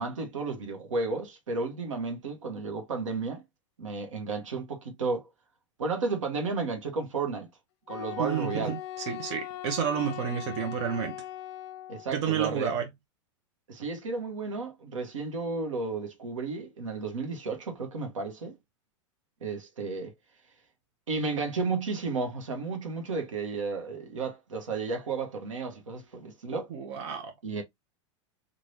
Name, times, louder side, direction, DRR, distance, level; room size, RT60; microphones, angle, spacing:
voice 1, 0.0-3.4 3.8-5.2 5.8-7.5 7.9-8.7 11.9-12.7 13.7-18.5 19.4-20.1 21.1-26.7 27.4-27.6, right 4 dB, 90° right, 1.1 m, -33 dB
Wind instrument woodwind instrument, 7.9-12.1, left 12 dB, 55° left, 0.5 m, -40 dB
voice 2, 8.2-11.1 12.1-12.9 26.7-27.3, right 8 dB, 60° right, 0.9 m, -30 dB
3.3 x 2.5 x 2.6 m
hypercardioid pair, 105°, 16 cm